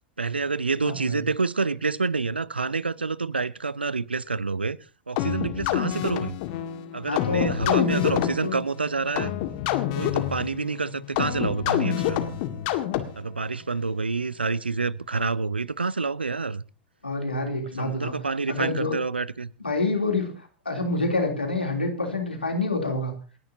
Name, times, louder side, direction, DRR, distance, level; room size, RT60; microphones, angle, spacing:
voice 1, 0.2-4.8 5.1-6.4 6.9-9.3 9.9-12.2 13.2-16.6 17.8-19.5, right 4 dB, 85° right, 0.6 m, -28 dB
voice 2, 0.8-1.2 7.0-8.6 17.0-18.1 18.5-18.9 19.6-23.1, left 3 dB, 85° left, 3.3 m, -27 dB
sound 1, 5.2-13.4, left 12 dB, 50° left, 1.9 m, -27 dB
28.5 x 10.5 x 2.8 m
figure-of-eight pair, 90°, 5 cm